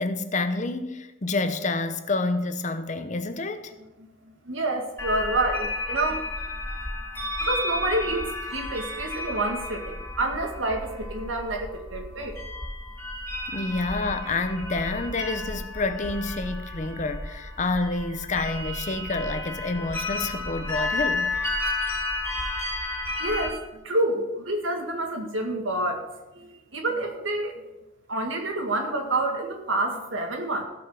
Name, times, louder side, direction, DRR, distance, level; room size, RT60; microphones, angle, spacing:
voice 1, 0.0-3.7 13.5-21.3, left 3 dB, 40° left, 0.8 m, -28 dB
voice 2, 4.5-6.3 7.4-12.4 13.5-13.6 23.2-23.6 23.8-26.1 26.3-27.5 28.1-30.6, right 2 dB, 85° right, 1.9 m, -28 dB
sound 1, 5.0-23.5, left 2 dB, 10° left, 2.1 m, -32 dB
15.5 x 5.3 x 6.2 m
head